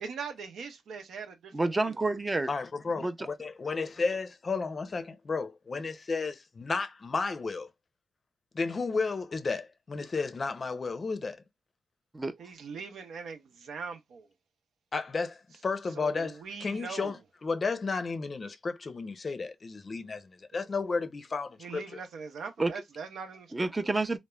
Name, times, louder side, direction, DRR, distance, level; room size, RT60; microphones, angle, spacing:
voice 1, 0.0-2.0 12.4-14.3 15.9-17.1 21.6-23.7, right 5 dB, 85° right, 0.6 m, -41 dB
voice 2, 1.5-2.5 3.0-3.1 12.1-12.3 22.6-22.7 23.5-24.2, right 2 dB, 20° right, 0.5 m, -28 dB
voice 3, 2.5-7.7 8.5-11.4 14.9-22.0, left 4 dB, 45° left, 0.5 m, -33 dB
3.0 x 2.0 x 2.2 m
cardioid pair, 85°, 0 cm